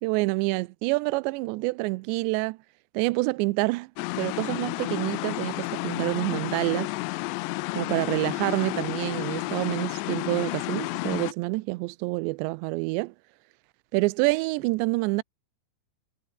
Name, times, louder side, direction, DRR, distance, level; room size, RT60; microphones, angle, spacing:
voice 1, 0.0-2.6 2.9-3.9 4.2-6.9 7.8-13.1 13.9-15.2, right 24 dB, 80° right, 2.6 m, -27 dB
sound 1, 4.0-11.3, left 22 dB, 85° left, 2.5 m, -31 dB
omnidirectional pair, 5.5 m